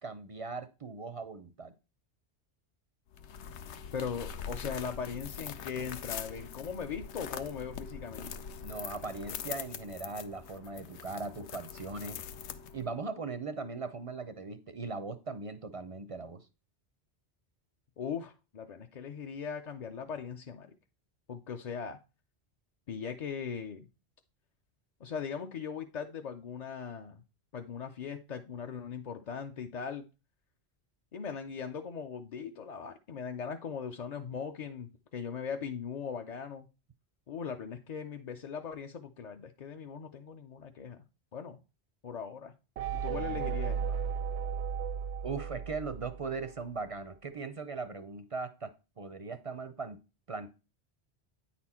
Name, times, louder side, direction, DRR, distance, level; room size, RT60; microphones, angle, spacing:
voice 1, 0.0-1.7 8.6-12.2 12.7-16.5 45.2-50.0 50.3-50.5, right 4 dB, 45° right, 0.5 m, -39 dB
sound 1, 3.1-13.0, left 7 dB, 90° left, 0.9 m, -43 dB
voice 2, 3.9-8.4 18.0-20.7 21.3-22.0 22.9-23.9 25.0-27.2 27.5-30.1 31.1-36.7 37.3-41.0 41.3-41.6 42.0-42.5 42.9-44.0, left 6 dB, 50° left, 0.5 m, -39 dB
sound 2, 42.8-46.5, right 7 dB, 80° right, 0.9 m, -35 dB
9.2 x 4.3 x 4.2 m
omnidirectional pair, 1.1 m